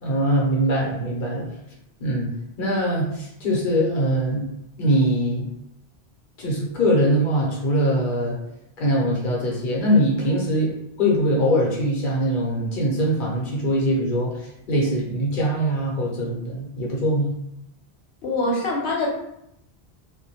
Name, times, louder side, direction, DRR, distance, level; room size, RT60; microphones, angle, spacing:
voice 1, 0.0-1.5 2.0-2.3 2.6-4.5 4.8-5.5 6.4-8.4 8.8-10.7 11.0-17.3, equal, 55° left, -3 dB, 0.8 m, -22 dB
voice 2, 18.2-19.1, left 2 dB, 80° left, -3 dB, 0.9 m, -24 dB
2.1 x 2.0 x 2.8 m, 0.79 s
omnidirectional pair, 1.1 m